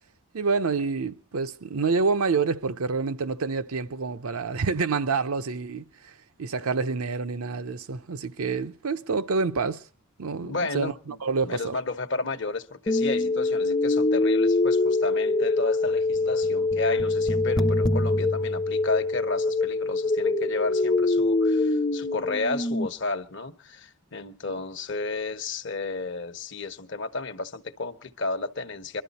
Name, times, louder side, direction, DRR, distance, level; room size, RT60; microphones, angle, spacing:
voice 1, 0.3-6.1 6.4-9.8 10.2-11.7, right 4 dB, 75° right, 0.7 m, -27 dB
voice 2, 10.4-11.2 11.4-29.0, left 3 dB, 55° left, 1.0 m, -32 dB
sound 1, 12.9-22.9, left 2 dB, 20° left, 0.7 m, -24 dB
23.0 x 12.5 x 4.1 m
head